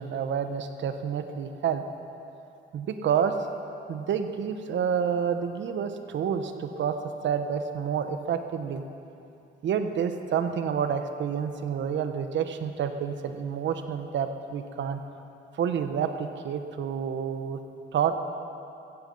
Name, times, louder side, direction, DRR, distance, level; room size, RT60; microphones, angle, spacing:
voice 1, 0.0-1.8 2.7-3.4 3.9-7.0 7.2-8.8 9.6-15.0 15.6-17.6 17.9-18.2, right 7 dB, 70° right, 8 dB, 1.1 m, -29 dB
16.0 x 15.5 x 5.6 m, 2.8 s
cardioid pair, 90°, 20 cm